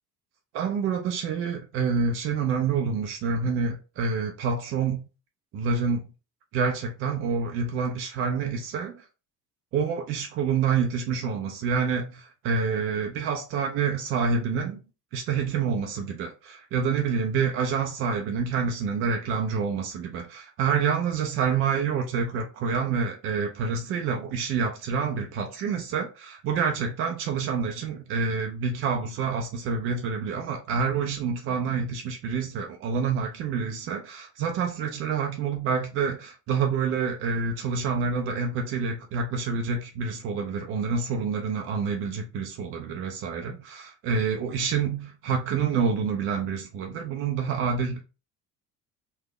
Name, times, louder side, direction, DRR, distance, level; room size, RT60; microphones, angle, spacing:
voice 1, 0.5-5.0 5.5-6.0 6.5-8.9 9.7-14.8 15.1-48.0, right 5 dB, 30° right, 0.3 m, -27 dB
3.2 x 2.1 x 3.0 m
figure-of-eight pair, 60°, 48 cm